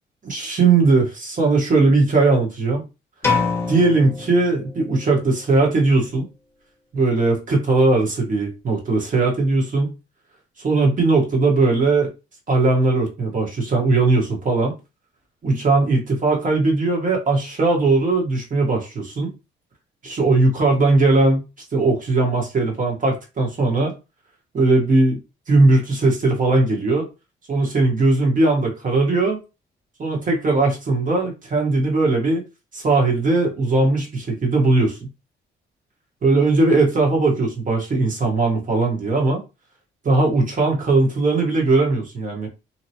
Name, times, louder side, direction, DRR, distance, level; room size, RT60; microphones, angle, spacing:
voice 1, 0.2-2.8 3.7-6.2 6.9-9.9 10.6-12.1 12.5-14.7 15.4-19.3 20.0-21.4 21.7-23.9 24.5-25.2 25.5-27.1 27.5-29.4 30.0-32.4 32.7-35.0 36.2-39.4 40.0-42.5, right 3 dB, 40° right, 0 dB, 1.3 m, -19 dB
sound 1, 3.2-5.1, left 4 dB, 15° left, 1.1 m, -25 dB
2.9 x 2.2 x 2.8 m, 0.28 s
cardioid pair, 90°, 20 cm